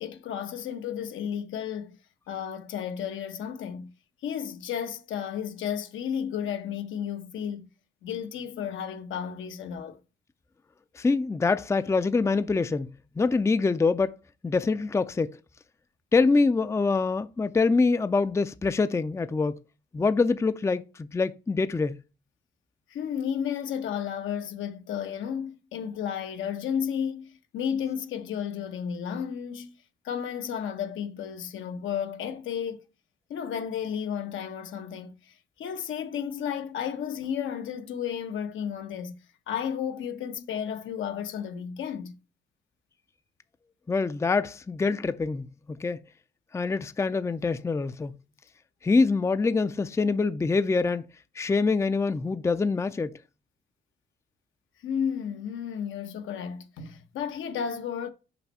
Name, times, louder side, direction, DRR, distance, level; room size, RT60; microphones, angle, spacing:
voice 1, 0.0-2.0 2.3-3.9 4.2-7.7 8.0-10.0 22.9-29.7 30.0-32.9 33.3-39.1 39.5-42.1 54.8-58.1, left 8 dB, 80° left, 1.1 m, -33 dB
voice 2, 11.0-14.2 14.4-15.4 16.1-19.6 19.9-22.0 43.9-46.0 46.5-48.2 48.8-51.1 51.4-53.2, left 4 dB, 15° left, 0.4 m, -25 dB
5.8 x 5.4 x 5.4 m
cardioid pair, 90°, 20 cm